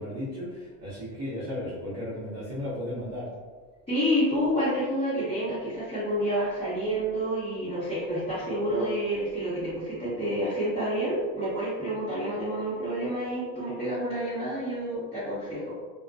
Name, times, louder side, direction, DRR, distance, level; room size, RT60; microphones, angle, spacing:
voice 1, 0.0-3.3, left 1 dB, 45° right, -9 dB, 0.8 m, -35 dB
voice 2, 3.9-15.7, equal, 15° left, -15 dB, 1.1 m, -29 dB
2.3 x 2.1 x 2.5 m, 1.5 s
supercardioid pair, 110°, 37 cm